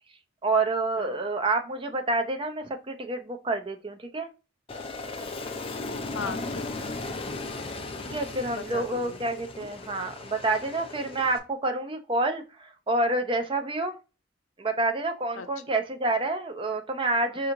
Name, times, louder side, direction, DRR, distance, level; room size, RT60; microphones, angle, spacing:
voice 1, 0.4-4.3 8.0-14.0 14.6-17.5, right 2 dB, 25° right, 0.5 m, -28 dB
Aircraft, 4.7-11.4, left 2 dB, 30° left, 0.5 m, -37 dB
voice 2, 6.1-6.9 7.3-7.7 8.5-9.2 9.6-9.7 15.4-15.5, left 5 dB, 90° left, 0.6 m, -38 dB
4.7 x 2.9 x 2.5 m
head